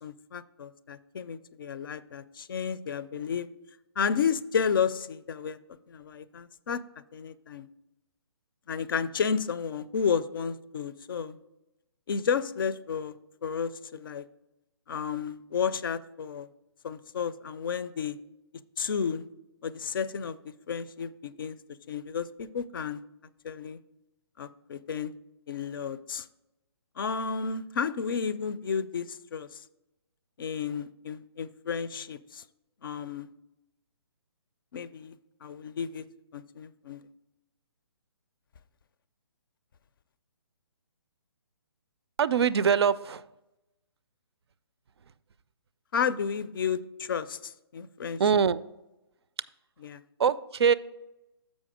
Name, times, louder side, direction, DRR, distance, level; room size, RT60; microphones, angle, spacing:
voice 1, 0.0-3.5 4.0-5.6 5.9-6.8 7.1-7.7 8.7-11.4 12.1-13.1 13.4-14.2 14.9-16.5 16.8-18.2 18.8-19.3 19.6-21.6 21.9-23.0 23.4-23.8 24.4-25.1 25.5-26.3 27.0-29.6 30.4-32.4 32.8-33.3 34.7-35.2 35.4-36.1 36.3-37.0 45.9-48.2 49.8-50.0, left 6 dB, 55° left, 16 dB, 0.4 m, -32 dB
voice 2, 42.2-43.3 48.2-48.6 50.2-50.7, right 7 dB, 70° right, 18 dB, 0.4 m, -23 dB
7.2 x 5.2 x 4.9 m, 0.96 s
hypercardioid pair, 150°, 14 cm